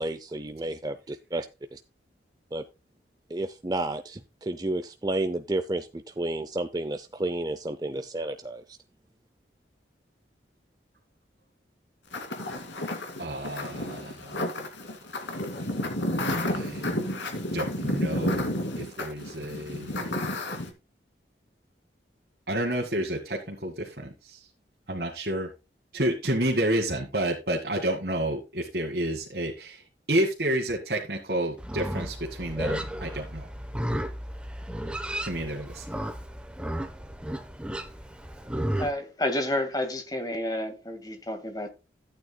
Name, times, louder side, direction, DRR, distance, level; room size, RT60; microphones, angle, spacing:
voice 1, 0.0-1.5 1.7-1.8 2.5-2.6 3.3-8.6, right 2 dB, 20° right, 0.6 m, -31 dB
sound 1, 12.1-20.7, left 1 dB, 80° left, 2.6 m, -31 dB
voice 2, 13.2-14.4 16.3-17.1 17.5-20.2 22.5-24.5 24.9-25.5 25.9-29.8 30.1-33.5 35.2-35.9, right 1 dB, 55° right, 2.0 m, -30 dB
Livestock farm animals working animals, 31.6-38.9, equal, 5° right, 0.9 m, -33 dB
voice 3, 38.8-41.7, left 1 dB, 20° left, 1.9 m, -30 dB
14.5 x 9.1 x 2.3 m
head